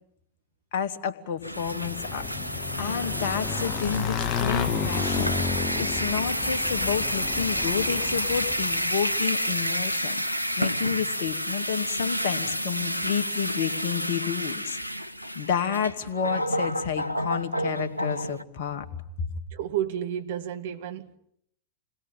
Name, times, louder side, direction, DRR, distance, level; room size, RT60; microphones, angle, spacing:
voice 1, 0.7-10.2 10.6-14.8 15.3-18.9 19.2-19.3, left 7 dB, 50° left, 2.6 m, -30 dB
sound 1, 1.4-18.4, equal, 90° left, 1.0 m, -29 dB
Motorcycle / Engine, 1.6-8.9, left 6 dB, 35° left, 1.7 m, -32 dB
voice 2, 19.5-21.2, right 10 dB, 55° right, 2.0 m, -31 dB
29.0 x 21.0 x 9.1 m
figure-of-eight pair, 90°, 0 cm